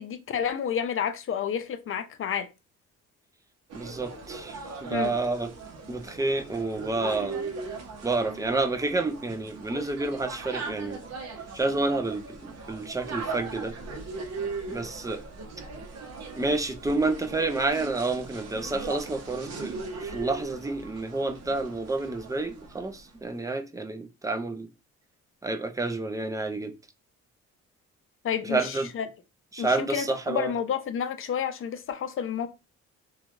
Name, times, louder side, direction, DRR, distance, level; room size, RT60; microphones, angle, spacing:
voice 1, 0.0-2.5 4.9-5.1 28.2-29.1 29.6-32.5, left 8 dB, 45° left, 0.5 m, -30 dB
voice 2, 3.7-5.5 5.9-7.5 8.0-11.0 11.5-13.7 14.7-15.2 16.3-24.7 25.4-26.7 28.5-28.9 29.5-30.5, right 2 dB, 10° right, 0.4 m, -29 dB
sound 1, 3.7-23.0, right 4 dB, 55° right, 0.8 m, -39 dB
3.0 x 2.3 x 2.4 m
cardioid pair, 90°, 30 cm